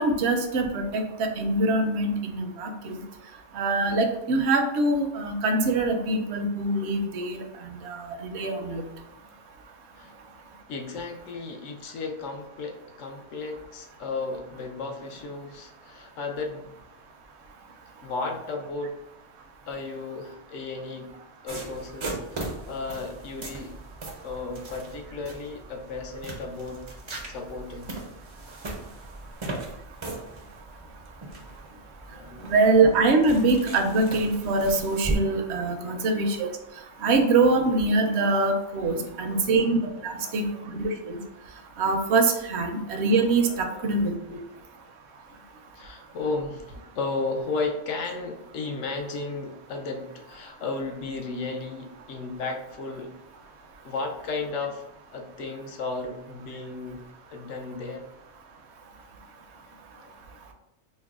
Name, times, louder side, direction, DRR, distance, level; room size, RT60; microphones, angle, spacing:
voice 1, 0.0-3.0 3.5-7.4 7.8-8.8 32.4-36.5 37.0-39.8 40.0-40.5 40.7-41.2 41.8-44.4, right 3 dB, 70° right, 5 dB, 0.8 m, -24 dB
voice 2, 10.7-16.7 18.0-19.0 19.7-21.1 21.4-23.8 24.2-26.9 27.3-28.0 32.1-32.6 35.6-36.1 38.8-39.6 39.9-40.7 43.4-43.9 44.3-44.6 45.3-45.4 45.8-53.1 53.8-58.1 60.0-60.2, left 3 dB, 80° left, 3 dB, 0.9 m, -34 dB
sound 1, 21.5-35.1, right 2 dB, 45° right, 0.4 m, -38 dB
5.3 x 2.1 x 2.3 m, 0.87 s
omnidirectional pair, 1.3 m